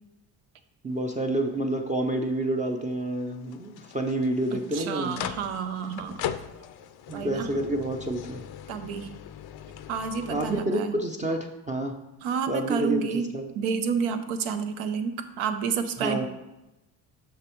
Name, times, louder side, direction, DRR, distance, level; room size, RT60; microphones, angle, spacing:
voice 1, 0.8-5.2 7.1-8.4 10.3-11.9 12.5-13.1 13.3-13.4 16.0-16.3, right 1 dB, 15° right, 3 dB, 0.5 m, -28 dB
sound 1, 0.9-10.6, left 10 dB, 55° left, 0.5 m, -41 dB
voice 2, 4.5-6.2 7.1-7.5 8.7-9.1 9.9-11.0 12.2-13.3 13.6-16.3, right 6 dB, 80° right, 8 dB, 0.8 m, -30 dB
6.5 x 6.1 x 3.1 m, 0.98 s
supercardioid pair, 80°, 48 cm